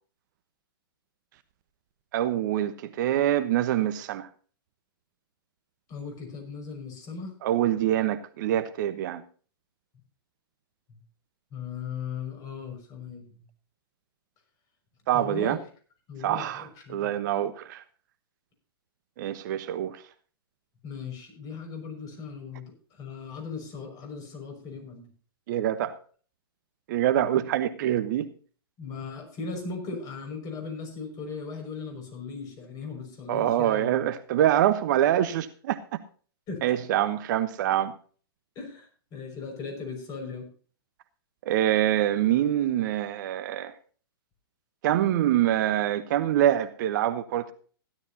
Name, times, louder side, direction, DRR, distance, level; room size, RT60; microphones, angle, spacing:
voice 1, 2.1-4.3 7.4-9.2 15.1-15.6 16.2-17.8 19.2-20.0 25.5-25.9 26.9-28.3 33.3-35.8 36.6-37.9 41.5-43.7 44.8-47.5, right 12 dB, 50° right, 1.1 m, -25 dB
voice 2, 5.9-7.4 10.9-11.0 11.5-13.4 15.1-15.6 16.1-17.1 20.8-25.1 28.8-33.9 36.5-36.6 38.6-40.5, left 5 dB, 30° left, 6.0 m, -38 dB
16.0 x 12.0 x 2.8 m
hypercardioid pair, 130°, 13 cm